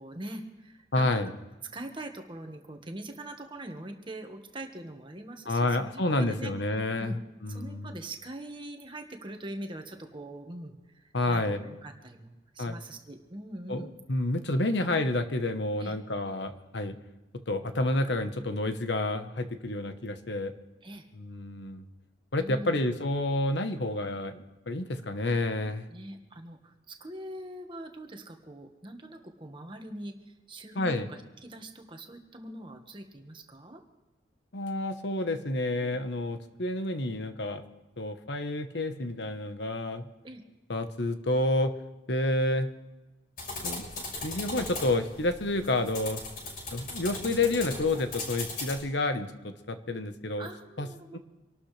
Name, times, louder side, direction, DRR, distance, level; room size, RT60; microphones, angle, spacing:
voice 1, 0.0-1.3 1.7-7.2 7.5-14.0 15.8-16.0 20.8-21.1 22.4-22.9 25.9-33.8 40.2-40.4 50.4-51.2, right 1 dB, 25° right, 4 dB, 1.5 m, -43 dB
voice 2, 0.9-1.3 5.5-8.0 11.1-11.6 12.6-12.7 13.7-17.0 17.5-20.5 21.1-21.8 22.3-25.8 30.8-31.1 34.5-37.6 38.0-40.1 40.7-41.7 42.1-42.7 43.6-43.9 44.2-46.2 46.7-50.5 50.8-50.9 51.1-51.2, left 2 dB, 70° left, 8 dB, 1.1 m, -29 dB
sound 1, 43.4-48.8, left 2 dB, 50° left, 6.2 m, -38 dB
26.0 x 12.5 x 3.3 m, 1.1 s
head